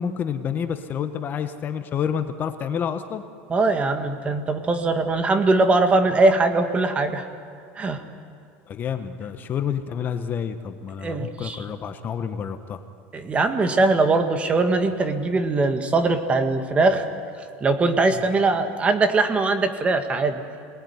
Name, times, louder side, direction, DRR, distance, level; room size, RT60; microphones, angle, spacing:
voice 1, 0.0-3.2 8.7-12.8, left 7 dB, 35° left, 8 dB, 1.3 m, -29 dB
voice 2, 3.5-7.3 7.8-8.0 11.0-11.6 13.1-17.0 17.6-20.4, right 3 dB, 20° right, 7 dB, 2.0 m, -21 dB
26.5 x 19.5 x 9.7 m, 2.4 s
supercardioid pair, 130°, 6 cm